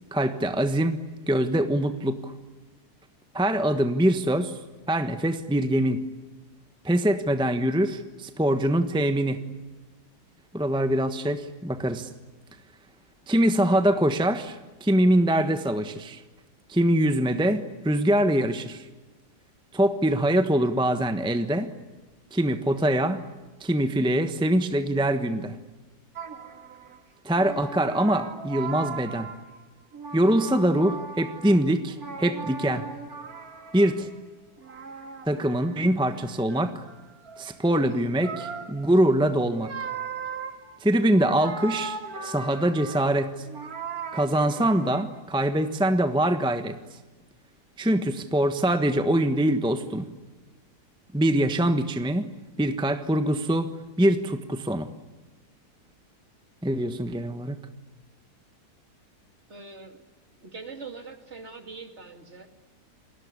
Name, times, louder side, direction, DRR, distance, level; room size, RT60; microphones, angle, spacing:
voice 1, 0.1-2.3 3.3-4.6 4.9-6.0 6.8-9.4 10.5-12.1 13.3-16.2 16.7-18.9 19.7-21.7 22.3-23.2 23.6-25.6 27.2-29.3 30.1-32.9 33.7-34.1 35.3-36.8 37.4-39.7 40.8-43.3 44.1-46.8 47.8-50.1 51.1-52.3 52.6-53.7 54.0-54.9 56.6-57.6, right 1 dB, 5° right, 8 dB, 1.2 m, -24 dB
sound 1, 26.2-27.0 27.4-29.6 29.9-34.2 34.6-45.2, right 5 dB, 65° right, 2.3 m, -39 dB
voice 2, 59.5-60.0 60.4-62.5, right 4 dB, 45° right, 7 dB, 2.7 m, -42 dB
29.0 x 20.5 x 9.8 m, 1.3 s
omnidirectional pair, 1.7 m